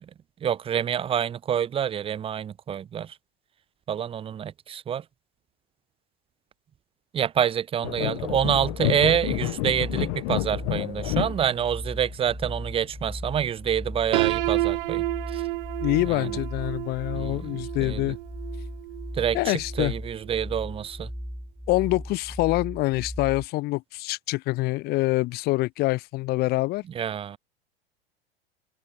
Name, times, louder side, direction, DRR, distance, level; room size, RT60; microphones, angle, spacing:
voice 1, 0.4-3.1 3.9-5.0 7.1-15.4 16.1-16.3 17.1-18.0 19.2-21.1 26.9-27.4, right 9 dB, 20° right, 0.6 m, -27 dB
sound 1, 7.8-13.2, left 33 dB, 50° left, 2.8 m, -30 dB
sound 2, 8.2-23.5, equal, ahead, 1.9 m, -37 dB
Piano, 14.1-20.0, right 18 dB, 60° right, 2.7 m, -30 dB
voice 2, 15.8-18.2 19.3-19.9 21.7-26.8, left 20 dB, 30° left, 0.5 m, -25 dB
figure-of-eight pair, 80°, 31 cm